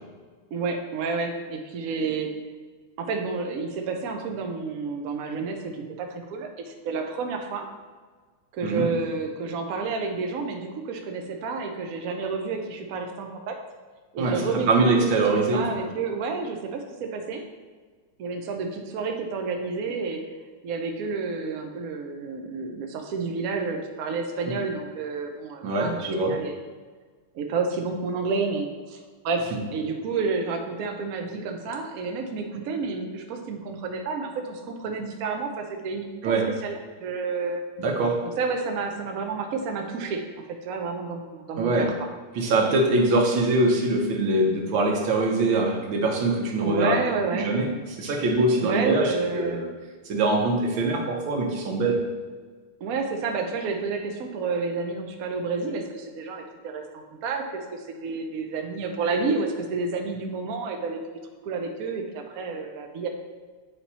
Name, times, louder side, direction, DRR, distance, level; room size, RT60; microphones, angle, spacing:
voice 1, 0.5-2.3 3.0-7.7 8.5-13.6 14.1-14.9 15.5-17.4 18.2-20.2 20.6-25.9 26.2-26.6 27.3-36.3 36.6-37.6 38.4-40.2 40.6-41.9 46.6-47.5 48.6-49.6 52.8-57.4 57.7-61.0 61.4-63.1, right 4 dB, 90° right, 4 dB, 0.7 m, -30 dB
voice 2, 14.2-15.6 24.5-24.6 25.6-26.4 36.2-36.4 37.8-38.2 41.6-41.9 42.4-47.0 47.3-47.7 48.0-49.7 50.1-52.0, right 2 dB, 70° right, 0 dB, 1.7 m, -23 dB
8.3 x 2.9 x 4.1 m, 1.5 s
omnidirectional pair, 2.4 m